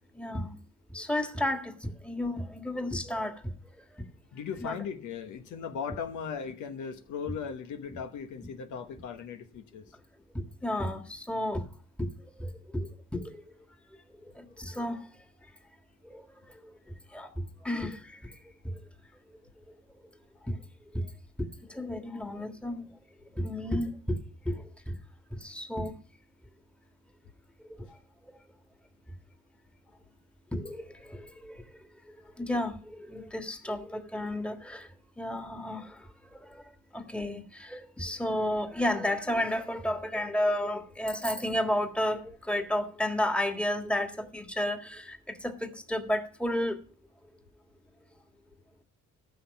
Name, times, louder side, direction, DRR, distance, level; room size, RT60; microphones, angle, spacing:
voice 1, 0.1-0.5 0.9-3.3 4.6-4.8 10.3-11.6 12.0-12.1 12.4-13.3 14.6-15.0 16.1-16.2 17.1-18.3 18.6-18.8 20.5-20.6 20.9-21.1 21.4-22.8 23.4-24.2 24.4-24.9 25.3-25.9 27.8-27.9 30.5-31.6 32.4-34.9 35.2-36.6 36.9-46.8, left 1 dB, 5° left, 1.6 m, -32 dB
voice 2, 4.3-9.8, left 6 dB, 75° left, 1.2 m, -38 dB
14.5 x 6.1 x 5.8 m
cardioid pair, 90°, 30 cm